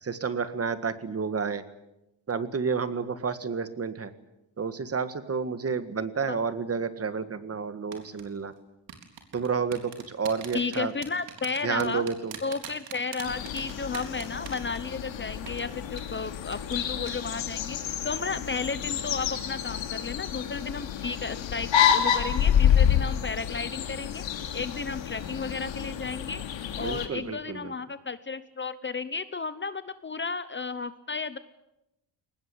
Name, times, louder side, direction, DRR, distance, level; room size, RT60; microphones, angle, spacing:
voice 1, 0.0-1.6 2.3-4.1 4.6-8.5 9.3-10.9 11.6-12.3 26.8-27.7, right 5 dB, 30° right, 12 dB, 1.7 m, -30 dB
sound 1, 7.9-8.2 8.9-15.2 15.5-15.6 16.0-16.1 16.5-16.8 17.1-17.4 17.7-17.8, right 9 dB, 85° right, 3.9 m, -41 dB
voice 2, 10.5-12.1 12.4-24.2 24.5-26.4 26.8-31.4, left 4 dB, 25° left, 14 dB, 0.8 m, -33 dB
sound 2, 13.2-27.1, left 9 dB, 85° left, 2.9 m, -28 dB
22.5 x 19.5 x 10.0 m, 0.92 s
cardioid pair, 135°, 44 cm